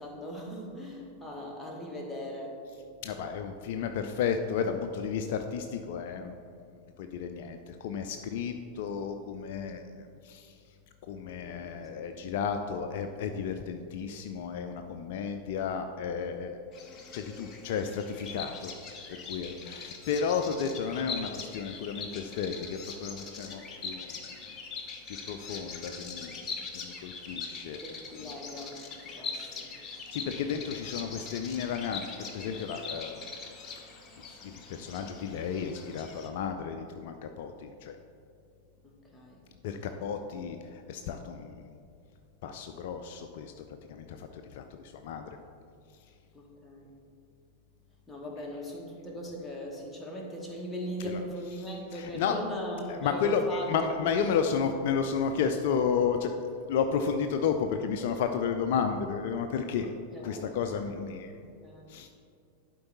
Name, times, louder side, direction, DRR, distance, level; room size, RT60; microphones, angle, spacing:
voice 1, 0.0-2.6 11.4-12.2 27.8-29.7 38.8-39.4 40.3-40.4 46.3-46.9 48.1-53.7 54.0-54.2 60.1-60.6 61.3-61.9, left 1 dB, 5° left, -2 dB, 1.4 m, -39 dB
voice 2, 3.0-6.4 7.0-10.6 11.0-16.6 17.1-18.7 19.1-24.2 25.3-27.8 28.2-28.3 30.1-33.3 33.8-34.0 34.2-38.0 39.6-41.7 42.4-45.3 51.1-51.2 51.6-52.4 52.9-56.3 56.7-59.9 60.2-61.3 61.9-62.1, left 6 dB, 50° left, 6 dB, 0.4 m, -32 dB
Bird vocalization bird call bird song, 16.7-36.3, left 4 dB, 30° left, 0.9 m, -42 dB
11.0 x 4.5 x 4.0 m, 2.3 s
figure-of-eight pair, 90°, 0 cm